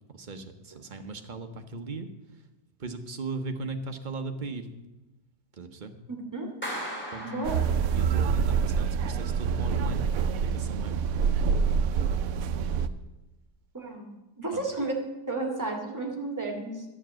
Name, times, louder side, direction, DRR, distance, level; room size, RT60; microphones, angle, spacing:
voice 1, 0.1-2.5 2.8-4.7 5.5-6.0 7.1-7.3 7.9-11.0 14.5-14.6, right 3 dB, 40° right, 6 dB, 0.7 m, -38 dB
voice 2, 6.1-6.5 7.2-7.5 13.7-14.1 14.4-14.9 15.3-16.9, right 2 dB, 10° right, 1 dB, 1.9 m, -32 dB
Clapping, 6.6-8.3, equal, 5° left, 3.2 m, -38 dB
sound 1, 7.4-12.9, right 6 dB, 70° right, 0.9 m, -26 dB
12.5 x 7.2 x 7.5 m, 1.0 s
omnidirectional pair, 1.8 m